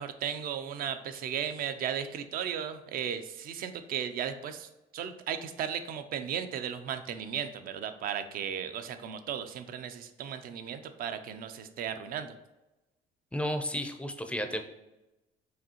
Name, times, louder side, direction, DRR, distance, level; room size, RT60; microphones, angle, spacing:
voice 1, 0.0-12.3, right 8 dB, 60° right, 10 dB, 0.4 m, -36 dB
voice 2, 13.3-14.6, equal, 5° left, 7 dB, 0.4 m, -32 dB
4.9 x 2.7 x 2.9 m, 1.0 s
cardioid pair, 110°, 17 cm